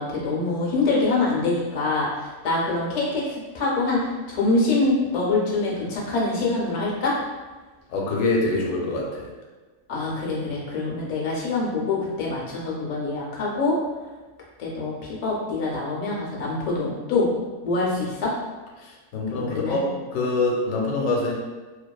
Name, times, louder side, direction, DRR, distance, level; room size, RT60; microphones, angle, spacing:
voice 1, 0.0-7.2 9.9-13.8 14.6-17.3 17.6-18.3 19.3-19.8, left 3 dB, 60° left, -4 dB, 0.4 m, -25 dB
voice 2, 7.9-9.3 18.8-21.3, left 2 dB, 90° left, -2 dB, 1.0 m, -25 dB
2.5 x 2.3 x 2.2 m, 1.3 s
omnidirectional pair, 1.5 m